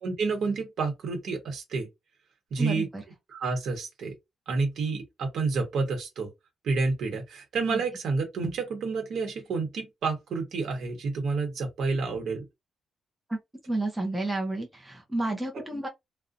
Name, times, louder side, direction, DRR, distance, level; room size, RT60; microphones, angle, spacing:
voice 1, 0.0-1.9 2.5-2.8 3.3-4.1 4.5-6.3 6.6-12.4 15.5-15.6, right 4 dB, 65° right, 0.8 m, -29 dB
voice 2, 2.6-3.0 7.7-7.8 13.3-13.4 13.7-15.9, right 2 dB, 10° right, 0.5 m, -31 dB
2.4 x 2.0 x 2.5 m
wide cardioid pair, 160°, 0 cm